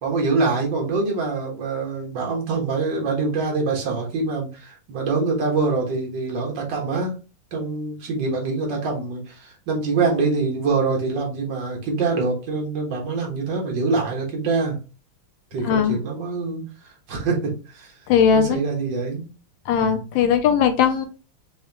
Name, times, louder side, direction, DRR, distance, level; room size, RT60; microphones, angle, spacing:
voice 1, 0.0-7.2 7.5-14.8 15.5-16.6 17.1-17.9 18.3-19.2 19.7-20.0, right 4 dB, 60° right, 0 dB, 1.9 m, -25 dB
voice 2, 15.6-16.0 18.1-18.6 19.7-21.1, left 7 dB, 75° left, 7 dB, 1.1 m, -19 dB
5.5 x 2.4 x 2.8 m, 0.33 s
omnidirectional pair, 2.4 m